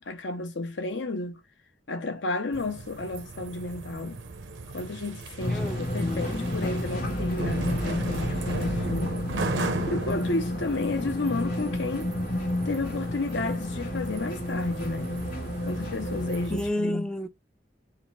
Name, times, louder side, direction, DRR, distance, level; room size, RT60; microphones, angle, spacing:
voice 1, 0.0-1.4 1.9-4.2 4.7-9.4 9.9-12.1 12.6-15.1 15.7-17.1, left 2 dB, 75° left, 0.9 m, -32 dB
sound 1, 2.5-16.7, right 2 dB, 85° right, 0.8 m, -36 dB
sound 2, 5.4-16.5, left 1 dB, 50° left, 2.2 m, -31 dB
voice 2, 5.5-6.5 16.5-17.3, left 1 dB, 5° left, 0.3 m, -31 dB
4.7 x 2.0 x 3.3 m
head